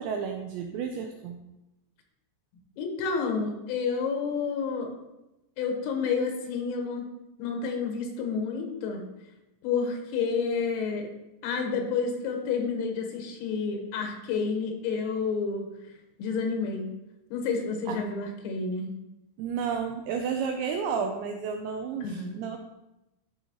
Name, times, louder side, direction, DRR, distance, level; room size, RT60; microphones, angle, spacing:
voice 1, 0.0-1.4 17.9-18.0 19.4-22.6, right 6 dB, 85° right, 4 dB, 2.5 m, -31 dB
voice 2, 2.8-4.9 5.6-7.1 7.4-9.0 9.6-11.1 11.4-15.7 16.2-16.9 17.3-18.9 22.0-22.4, left 5 dB, 90° left, 2 dB, 3.9 m, -30 dB
12.5 x 5.5 x 2.9 m, 0.95 s
omnidirectional pair, 5.9 m